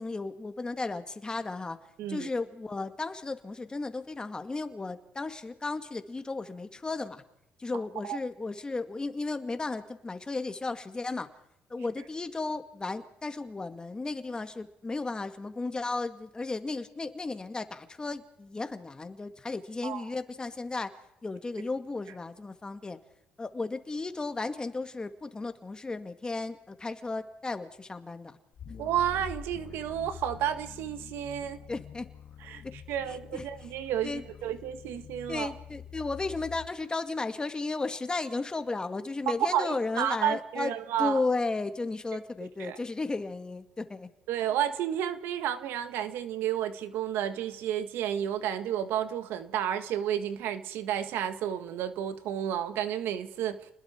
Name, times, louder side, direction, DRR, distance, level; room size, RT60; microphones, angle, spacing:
voice 1, 0.0-1.8 2.1-7.2 7.6-11.3 11.7-23.0 23.4-28.4 31.7-32.1 32.6-32.7 33.1-33.4 34.0-34.2 35.3-40.7 41.0-44.1, left 3 dB, 20° left, 2.1 m, -34 dB
sound 1, 28.6-36.7, left 7 dB, 55° left, 2.2 m, -46 dB
voice 2, 28.8-31.6 32.4-32.6 32.9-35.5 39.3-41.2 42.6-42.8 44.3-53.7, right 10 dB, 80° right, 1.7 m, -31 dB
30.0 x 21.0 x 4.6 m
cardioid pair, 90°, 4 cm